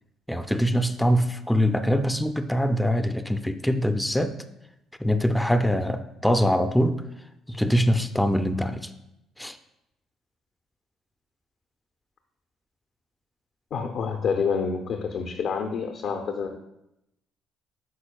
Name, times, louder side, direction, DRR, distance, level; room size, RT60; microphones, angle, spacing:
voice 1, 0.3-4.4 5.0-7.0 7.5-8.9 9.4-9.6, equal, 5° left, 9 dB, 0.5 m, -23 dB
voice 2, 13.7-16.6, left 5 dB, 60° left, 5 dB, 0.6 m, -28 dB
11.0 x 4.3 x 2.3 m, 0.86 s
hypercardioid pair, 50°, 0 cm